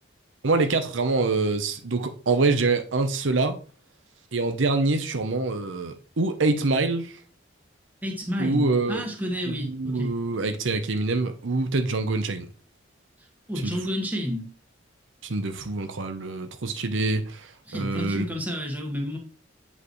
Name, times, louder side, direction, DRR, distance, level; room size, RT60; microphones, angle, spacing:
voice 1, 0.4-3.6 4.3-7.1 8.4-9.0 9.5-12.5 13.6-13.8 15.2-18.3, right 3 dB, 75° right, 0.8 m, -25 dB
voice 2, 8.0-10.1 13.2-14.5 17.7-19.2, equal, 10° right, 1.5 m, -30 dB
8.4 x 5.5 x 3.1 m
head